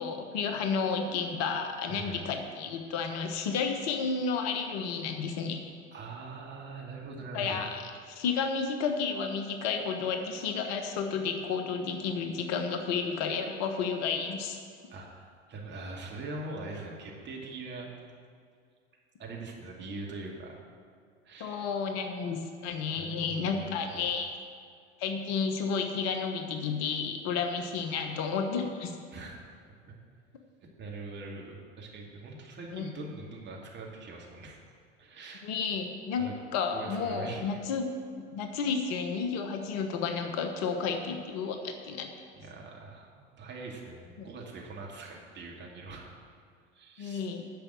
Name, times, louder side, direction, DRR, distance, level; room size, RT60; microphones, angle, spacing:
voice 1, 0.0-5.6 7.3-14.6 21.4-24.3 25.0-29.0 32.7-32.8 35.4-36.3 36.5-42.1 44.2-44.3 47.0-47.4, left 5 dB, 50° left, 5 dB, 1.2 m, -31 dB
voice 2, 1.9-2.2 5.9-7.6 14.9-17.9 19.2-20.6 21.2-21.7 22.9-24.1 29.1-29.4 30.8-34.6 35.0-35.4 36.2-36.3 36.7-37.4 42.4-46.1 46.7-47.2, right 3 dB, 30° right, -1 dB, 2.4 m, -42 dB
10.5 x 6.6 x 7.7 m, 2.2 s
figure-of-eight pair, 75°, 35 cm